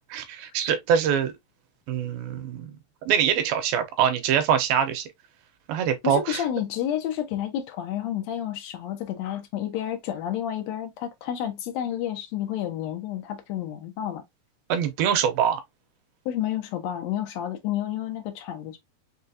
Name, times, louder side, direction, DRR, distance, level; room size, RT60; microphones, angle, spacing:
voice 1, 0.1-1.3 1.9-2.7 3.1-5.1 5.7-6.4 14.7-15.6, right 8 dB, 85° right, 2.5 m, -24 dB
voice 2, 6.0-14.2 16.2-18.8, left 11 dB, 75° left, 1.6 m, -30 dB
6.1 x 2.4 x 2.6 m
omnidirectional pair, 4.2 m